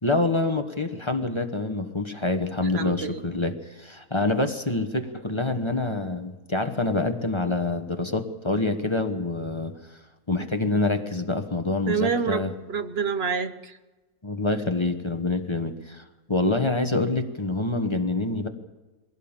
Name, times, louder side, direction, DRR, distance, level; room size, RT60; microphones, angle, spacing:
voice 1, 0.0-10.0 10.3-12.5 14.2-18.5, left 2 dB, 20° left, 6 dB, 1.1 m, -26 dB
voice 2, 2.7-3.2 4.2-4.3 11.9-13.8, right 6 dB, 50° right, 11 dB, 1.0 m, -28 dB
22.0 x 16.5 x 7.3 m, 1.2 s
omnidirectional pair, 1.6 m